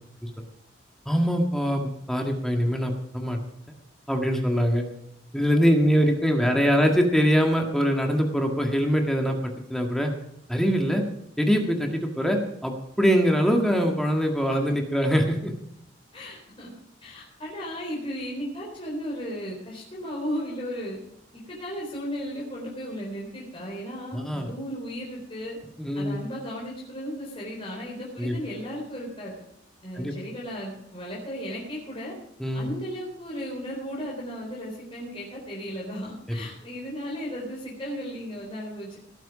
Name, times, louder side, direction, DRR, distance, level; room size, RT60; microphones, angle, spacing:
voice 1, 1.1-3.4 4.1-4.8 5.3-10.1 10.5-11.0 11.4-15.5 24.1-24.5 25.8-26.2 28.2-28.4 30.0-30.1 32.4-32.7, equal, 5° left, 2 dB, 1.8 m, -23 dB
voice 2, 16.1-16.7 17.0-21.0 21.6-25.6 25.9-29.3 29.8-32.1 32.5-39.0, equal, 30° left, -4 dB, 4.0 m, -35 dB
18.0 x 9.2 x 4.9 m, 0.76 s
head